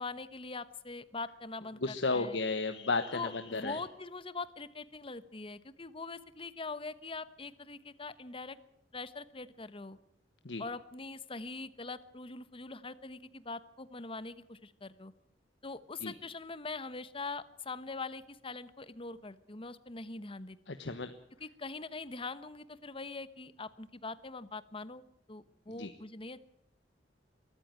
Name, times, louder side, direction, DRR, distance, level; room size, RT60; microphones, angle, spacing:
voice 1, 0.0-2.4 3.1-8.6 8.9-10.0 10.6-15.1 15.6-20.6 21.4-25.0 25.3-26.4, left 3 dB, 30° left, 14 dB, 1.1 m, -43 dB
voice 2, 1.8-3.8 10.4-10.6 16.0-16.1 20.7-21.1 25.7-25.9, left 3 dB, 70° left, 8 dB, 1.2 m, -33 dB
23.0 x 14.0 x 9.5 m, 0.75 s
head